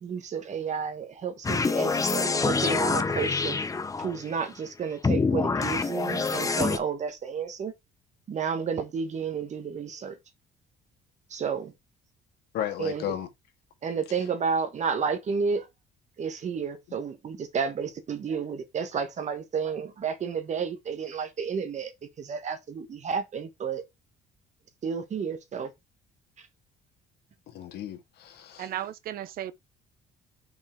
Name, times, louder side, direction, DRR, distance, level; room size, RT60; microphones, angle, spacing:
voice 1, 0.0-3.6 4.0-7.7 8.3-10.2 11.3-11.7 12.8-13.0 13.8-15.7 16.2-21.9 22.2-23.8 24.8-25.7, right 6 dB, 45° right, 1.4 m, -31 dB
sound 1, 1.4-4.3 5.0-6.8, left 4 dB, 20° left, 0.8 m, -26 dB
voice 2, 12.5-13.3 16.9-17.0 27.5-28.7, left 11 dB, 75° left, 1.9 m, -34 dB
voice 3, 28.6-29.5, right 12 dB, 60° right, 0.7 m, -35 dB
5.6 x 4.5 x 4.5 m
cardioid pair, 110°, 17 cm